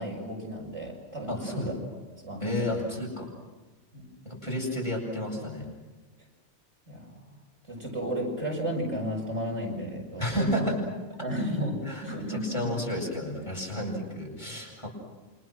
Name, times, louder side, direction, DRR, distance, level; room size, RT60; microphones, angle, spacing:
voice 1, 0.0-2.8 3.9-4.0 6.9-7.4 7.7-10.7 11.2-12.7, equal, 65° right, -1 dB, 6.9 m, -33 dB
voice 2, 1.3-1.7 2.4-3.3 4.2-5.6 10.2-10.8 11.9-14.9, left 1 dB, 25° left, -2 dB, 8.0 m, -31 dB
30.0 x 26.0 x 6.3 m, 1.2 s
omnidirectional pair, 1.2 m